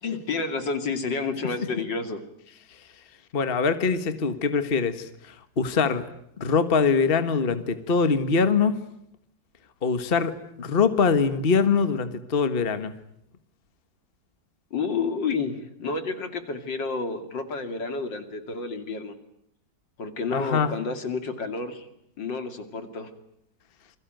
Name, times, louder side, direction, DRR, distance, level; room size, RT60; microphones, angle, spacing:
voice 1, 0.0-2.2 14.7-19.2 20.0-21.9 22.2-23.1, left 4 dB, 70° left, 8 dB, 3.3 m, -30 dB
voice 2, 3.3-6.1 6.4-8.8 9.8-12.9 20.3-20.7, left 5 dB, 30° left, 10 dB, 1.5 m, -23 dB
28.5 x 22.0 x 9.2 m, 0.76 s
omnidirectional pair, 2.0 m